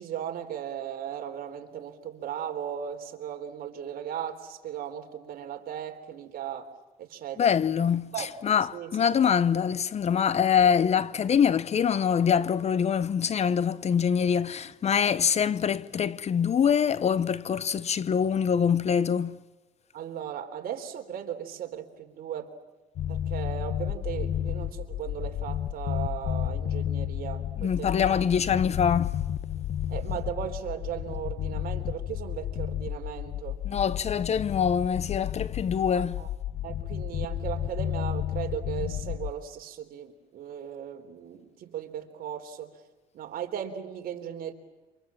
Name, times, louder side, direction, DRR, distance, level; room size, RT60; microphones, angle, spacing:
voice 1, 0.0-6.7 7.0-7.5 8.1-8.3 8.7-8.9 19.9-22.5 23.1-28.2 29.9-33.6 35.9-36.3 36.6-42.7 43.1-44.5, right 9 dB, 60° right, 3.6 m, -37 dB
voice 2, 7.4-19.4 27.6-29.2 33.6-36.2, left 7 dB, 40° left, 0.9 m, -24 dB
sound 1, 23.0-39.3, left 11 dB, 60° left, 1.3 m, -32 dB
28.5 x 26.5 x 7.5 m
cardioid pair, 110°, 17 cm